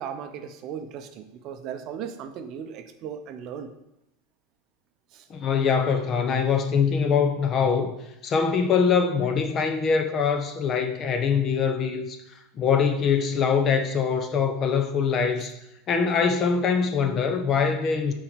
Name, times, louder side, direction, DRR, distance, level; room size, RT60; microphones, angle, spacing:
voice 1, 0.0-3.7 5.1-5.3 15.4-15.5, right 8 dB, 45° right, 7 dB, 0.6 m, -37 dB
voice 2, 5.3-7.9 8.2-12.2 12.6-15.5 15.9-18.1, left 6 dB, 30° left, 7 dB, 0.6 m, -23 dB
5.7 x 4.1 x 5.1 m, 0.85 s
supercardioid pair, 145°, 0 cm